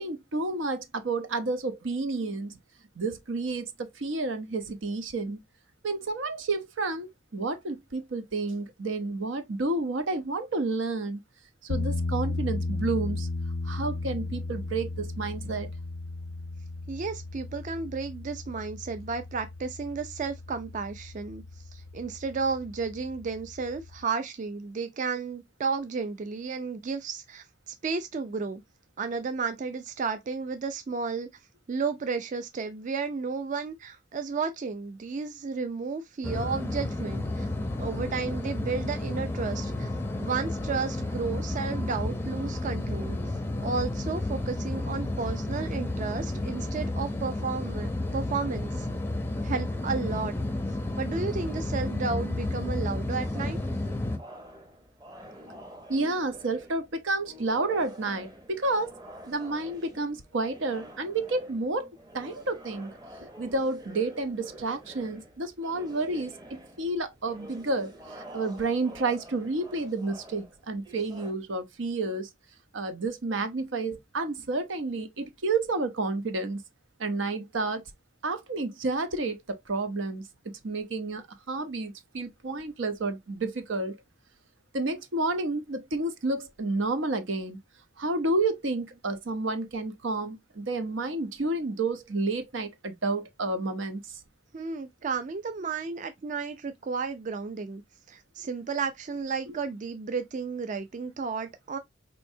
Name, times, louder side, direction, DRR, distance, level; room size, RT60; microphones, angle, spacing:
voice 1, 0.0-2.5 3.0-5.4 5.8-11.2 11.6-13.3 13.6-15.7 55.9-58.9 59.3-62.9 63.4-72.3 72.7-76.6 77.0-77.8 78.2-84.0 84.7-87.6 88.0-94.2 99.5-99.6, right 3 dB, 80° right, 0.7 m, -30 dB
sound 1, 11.7-24.0, left 2 dB, 75° left, 0.4 m, -35 dB
voice 2, 16.9-21.4 21.7-28.6 29.0-31.3 31.7-37.5 37.8-39.9 40.2-43.2 43.6-48.9 49.4-50.4 51.0-53.6 94.5-97.8 98.1-101.8, right 5 dB, 40° right, 0.4 m, -33 dB
sound 2, 36.2-54.2, left 2 dB, 10° left, 0.5 m, -31 dB
sound 3, 53.2-71.3, right 1 dB, 20° right, 0.8 m, -48 dB
4.4 x 2.7 x 2.6 m
head